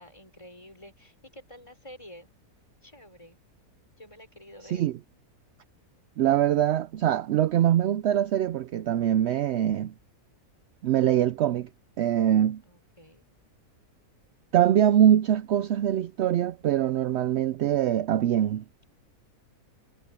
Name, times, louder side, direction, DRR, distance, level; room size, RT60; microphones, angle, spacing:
voice 1, 0.0-2.3 2.8-3.4 4.0-4.8 12.6-13.2, equal, 20° left, 4.8 m, -49 dB
voice 2, 6.2-9.9 10.8-11.7 12.0-12.6 14.5-18.6, right 11 dB, 70° right, 0.6 m, -23 dB
omnidirectional pair, 1.6 m